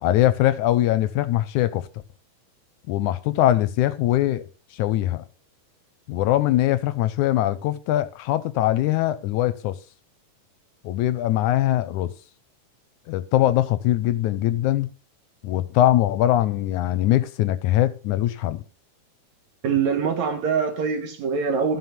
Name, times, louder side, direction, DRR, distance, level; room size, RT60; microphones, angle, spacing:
voice 1, 0.0-1.9 2.9-4.4 4.7-5.2 6.1-9.8 10.8-12.1 13.1-14.9 15.4-18.6, left 14 dB, 75° left, 1.9 m, -22 dB
voice 2, 19.6-21.8, right 6 dB, 65° right, 2.5 m, -24 dB
13.5 x 5.6 x 5.8 m
omnidirectional pair, 3.8 m